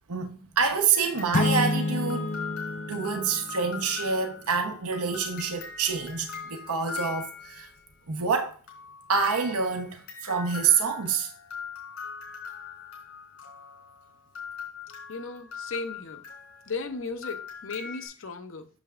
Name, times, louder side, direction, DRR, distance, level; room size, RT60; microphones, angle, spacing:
voice 1, 0.1-2.3 2.9-7.7 8.1-8.6 9.1-11.3, right 5 dB, 85° right, 1.0 m, -27 dB
sound 1, 0.9-7.9 8.7-18.1, left 6 dB, 75° left, 3.9 m, -41 dB
sound 2, 1.3-4.1, left 3 dB, 35° left, 0.3 m, -29 dB
voice 2, 15.1-16.2 16.7-18.7, left 4 dB, 60° left, 0.8 m, -36 dB
8.1 x 6.9 x 2.5 m
head